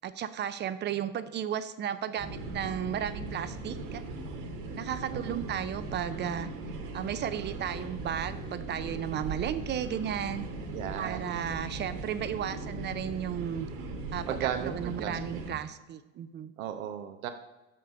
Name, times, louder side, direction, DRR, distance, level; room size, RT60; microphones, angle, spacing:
voice 1, 0.0-4.0 4.8-6.5 6.9-10.5 11.0-13.7 14.1-16.5, right 9 dB, 25° right, 12 dB, 0.5 m, -34 dB
sound 1, 2.2-15.5, right 2 dB, 55° right, 1.7 m, -39 dB
voice 2, 5.1-5.4 10.7-11.3 14.3-15.2 16.6-17.3, right 10 dB, 85° right, 7 dB, 0.8 m, -35 dB
6.3 x 5.9 x 5.0 m, 1.1 s
hypercardioid pair, 95°, 40 cm